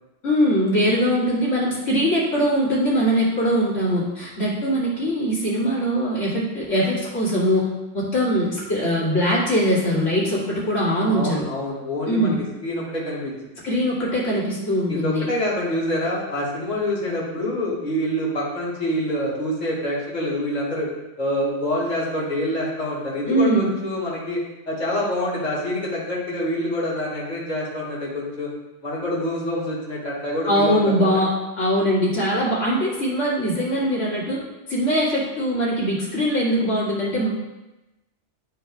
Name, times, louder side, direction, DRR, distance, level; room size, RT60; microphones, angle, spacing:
voice 1, 0.2-7.7 7.9-11.5 12.1-12.4 13.6-15.3 23.3-23.7 30.5-34.4 34.7-37.3, equal, 80° left, -7 dB, 2.4 m, -21 dB
voice 2, 11.1-12.4 12.6-13.3 14.9-20.9 21.2-28.5 28.8-31.2, left 1 dB, 35° left, -5 dB, 1.8 m, -26 dB
11.5 x 4.8 x 2.3 m, 1.0 s
omnidirectional pair, 1.3 m